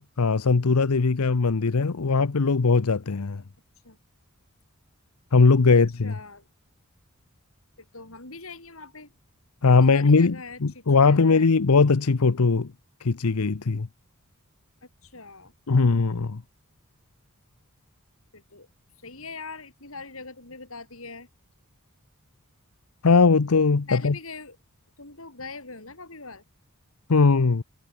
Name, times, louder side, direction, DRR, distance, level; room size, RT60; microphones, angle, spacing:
voice 1, 0.0-3.4 5.3-6.1 9.6-10.4 10.6-12.7 13.0-13.9 15.7-16.4 23.0-24.1 27.1-27.6, left 4 dB, 85° left, 0.8 m, -20 dB
voice 2, 6.0-6.5 7.8-9.1 9.8-11.5 15.0-15.5 18.3-18.7 19.0-21.3 23.9-24.6 25.0-26.4, left 4 dB, 65° left, 7.4 m, -42 dB
head